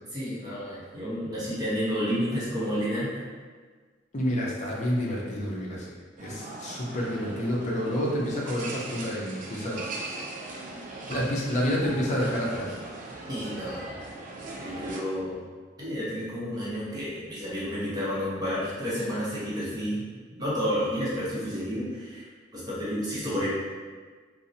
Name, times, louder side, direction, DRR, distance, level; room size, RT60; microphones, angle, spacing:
voice 1, 0.1-3.2 13.3-13.8 14.6-15.4 15.8-20.0 20.4-22.3 22.5-23.5, equal, 20° right, -8 dB, 0.7 m, -30 dB
voice 2, 4.1-5.9 6.2-9.8 11.1-12.7, equal, 40° left, -4 dB, 0.5 m, -29 dB
sound 1, 6.2-15.0, right 2 dB, 45° right, 0.3 m, -40 dB
2.6 x 2.0 x 2.6 m, 1.5 s
head